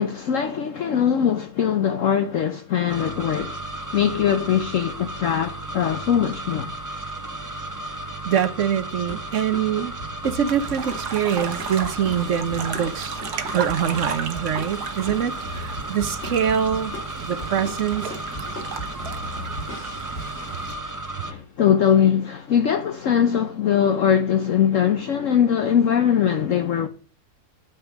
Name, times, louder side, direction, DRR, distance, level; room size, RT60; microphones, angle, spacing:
voice 1, 0.0-3.5 3.9-6.7 21.2-26.9, left 8 dB, 60° left, 1.1 m, -21 dB
sound 1, 2.9-21.3, right 1 dB, 15° right, 0.8 m, -34 dB
voice 2, 8.2-9.9 10.2-13.2 13.5-18.1, right 8 dB, 55° right, 1.1 m, -24 dB
sound 2, 9.1-21.0, left 1 dB, 45° left, 2.5 m, -38 dB
sound 3, 10.5-20.8, right 6 dB, 85° right, 1.7 m, -35 dB
8.9 x 5.4 x 7.2 m
omnidirectional pair, 1.7 m